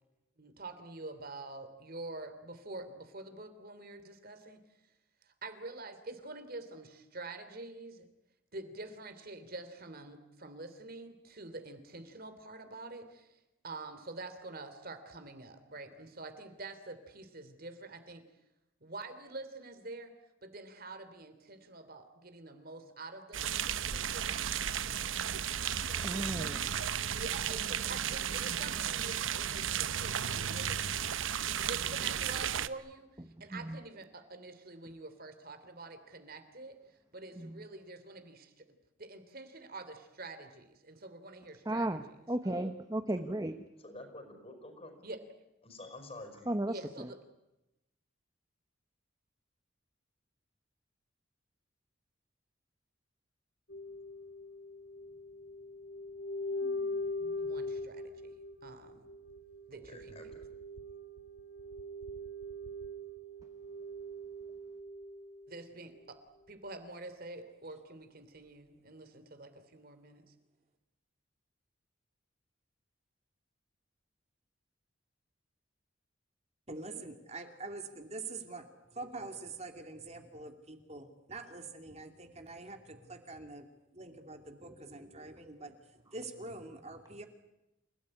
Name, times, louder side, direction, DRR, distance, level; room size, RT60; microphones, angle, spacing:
voice 1, 0.4-4.6 5.4-8.0 8.5-13.3 13.6-18.2 18.8-20.1 20.4-25.3 27.1-30.8 31.6-33.1 33.4-36.8 37.1-38.7 39.0-42.0 42.4-42.6 45.0-45.2 46.7-47.2 57.4-58.3 58.6-59.0 59.7-60.4 65.5-66.2 66.5-70.2, right 2 dB, 50° right, 9 dB, 3.1 m, -47 dB
sound 1, 23.3-32.7, right 9 dB, 90° right, 1.0 m, -34 dB
voice 2, 25.9-26.8 33.5-33.8 37.4-37.6 41.6-43.6 46.5-47.1, right 1 dB, 20° right, 8 dB, 1.1 m, -35 dB
voice 3, 43.8-45.0 45.6-46.5 59.7-60.4, left 2 dB, 30° left, 7 dB, 5.4 m, -49 dB
sound 2, 53.7-65.6 66.0-66.1, left 1 dB, 65° left, 1.6 m, -41 dB
voice 4, 76.7-83.7 83.9-87.3, right 3 dB, 35° right, 6 dB, 2.6 m, -45 dB
28.5 x 18.0 x 9.8 m, 0.93 s
head